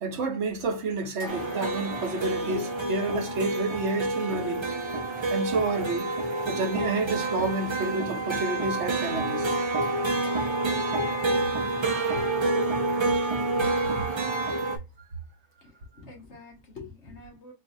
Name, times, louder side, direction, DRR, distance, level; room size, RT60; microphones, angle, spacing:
voice 1, 0.0-4.7 5.3-6.1 6.5-9.5, right 3 dB, 70° right, 1.1 m, -29 dB
sound 1, 1.2-3.9 9.8-13.8, left 2 dB, 85° left, 1.9 m, -47 dB
sound 2, 1.3-14.8, right 2 dB, 30° right, 0.5 m, -28 dB
voice 2, 15.6-17.5, left 3 dB, 70° left, 1.7 m, -46 dB
4.0 x 2.6 x 2.6 m
omnidirectional pair, 1.2 m